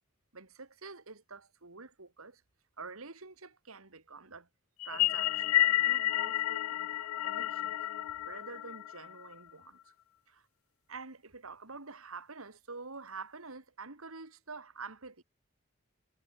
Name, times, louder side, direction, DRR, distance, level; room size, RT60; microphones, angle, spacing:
voice 1, 0.3-2.4 2.8-4.5 4.8-9.8 10.3-10.4 10.9-15.2, right 4 dB, 85° right, 2.5 m, -48 dB
sound 1, 4.8-9.3, left 14 dB, 85° left, 0.3 m, -30 dB
head